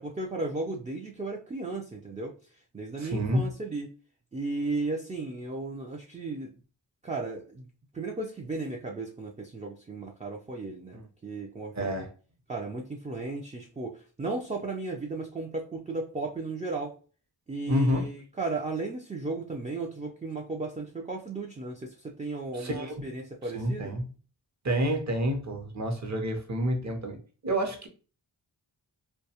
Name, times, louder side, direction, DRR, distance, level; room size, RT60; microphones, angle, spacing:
voice 1, 0.0-2.3 2.7-3.9 4.3-6.5 7.0-7.7 7.9-12.1 12.5-16.9 17.5-23.9, right 3 dB, 15° right, 0.4 m, -35 dB
voice 2, 3.0-3.5 10.9-11.1 11.7-12.1 17.7-18.1 22.5-23.1 23.5-24.1 24.6-27.9, equal, 35° right, 0.7 m, -29 dB
2.3 x 2.2 x 2.8 m
wide cardioid pair, 60°, 46 cm